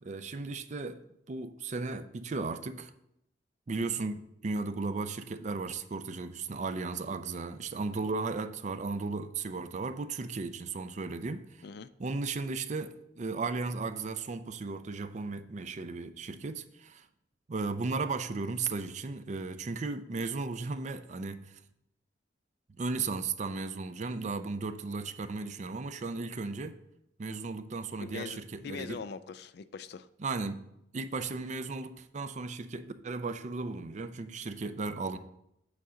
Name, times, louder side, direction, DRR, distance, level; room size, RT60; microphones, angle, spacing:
voice 1, 0.0-1.0 1.3-2.9 3.7-11.4 12.0-17.1 17.5-21.6 22.8-26.8 27.2-29.0 30.2-30.6 30.9-35.2, right 3 dB, 40° right, 0.4 m, -35 dB
voice 2, 28.0-30.1, left 5 dB, 60° left, 0.4 m, -42 dB
8.3 x 3.8 x 6.2 m
head